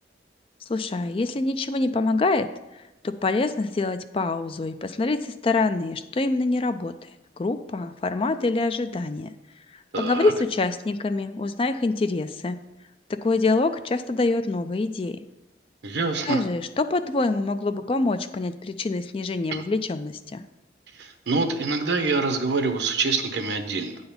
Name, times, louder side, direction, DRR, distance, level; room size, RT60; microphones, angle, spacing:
voice 1, 0.7-2.5 3.0-6.9 7.4-9.3 10.0-12.6 13.1-15.2 16.2-20.4, left 3 dB, 30° left, 10 dB, 0.3 m, -25 dB
voice 2, 9.9-10.3 15.8-16.4 19.5-19.6 21.0-24.0, right 4 dB, 75° right, 6 dB, 0.9 m, -25 dB
8.8 x 4.0 x 6.9 m, 0.99 s
head